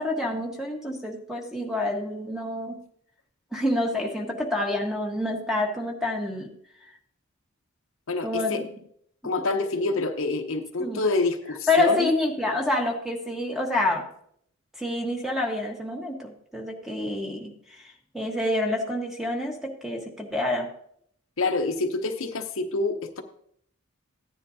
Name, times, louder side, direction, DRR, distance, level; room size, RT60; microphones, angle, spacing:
voice 1, 0.0-2.8 3.5-6.5 8.2-8.7 9.2-9.3 10.8-11.0 11.7-14.1 14.8-17.8 18.1-20.7, left 2 dB, ahead, 1 dB, 1.4 m, -27 dB
voice 2, 8.1-8.6 9.2-12.1 21.4-23.2, left 3 dB, 65° left, 5 dB, 0.9 m, -27 dB
15.5 x 10.0 x 2.8 m, 0.68 s
head